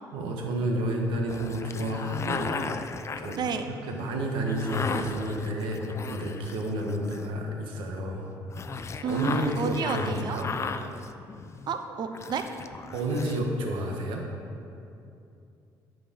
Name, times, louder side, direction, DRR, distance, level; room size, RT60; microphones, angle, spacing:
voice 1, 0.1-2.6 3.2-8.3 9.0-10.5 12.9-14.2, right 1 dB, 80° right, 1 dB, 1.3 m, -30 dB
sound 1, 1.3-7.5 8.5-11.8 12.1-13.4, left 5 dB, 35° left, 0.5 m, -36 dB
voice 2, 3.4-3.7 9.0-10.4 11.7-12.4, right 5 dB, 55° right, 8 dB, 0.7 m, -30 dB
9.8 x 5.0 x 6.3 m, 2.6 s
supercardioid pair, 80°, 9 cm